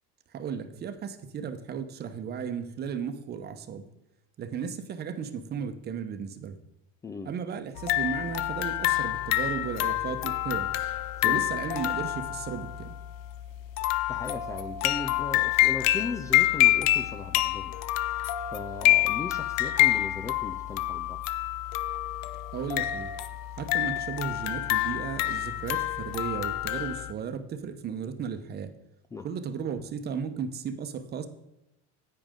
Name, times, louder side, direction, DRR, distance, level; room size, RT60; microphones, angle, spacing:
voice 1, 0.3-3.8 4.4-6.6 7.2-10.7 11.2-12.9 22.5-23.1 23.6-28.7 29.2-31.3, right 7 dB, 30° right, 9 dB, 0.9 m, -35 dB
voice 2, 7.0-7.3 11.2-11.5 14.1-17.8 18.5-21.2 29.1-29.3, left 3 dB, 10° left, 8 dB, 0.3 m, -37 dB
sound 1, 7.8-27.1, left 15 dB, 60° left, 0.6 m, -27 dB
10.0 x 8.8 x 3.7 m, 0.92 s
supercardioid pair, 130°, 31 cm